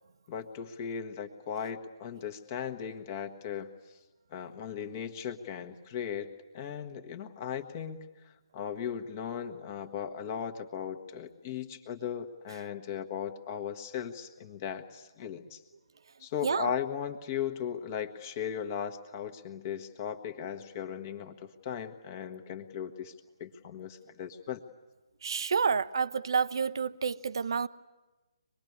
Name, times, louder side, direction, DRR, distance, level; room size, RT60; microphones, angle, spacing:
voice 1, 0.3-3.7 4.3-8.1 8.5-15.6 16.2-23.1 23.4-24.6, left 8 dB, 30° left, 7 dB, 1.5 m, -37 dB
voice 2, 16.2-16.7 25.2-27.7, right 6 dB, 55° right, 15 dB, 0.7 m, -29 dB
24.5 x 20.5 x 9.7 m, 1.2 s
figure-of-eight pair, 145°, 3 cm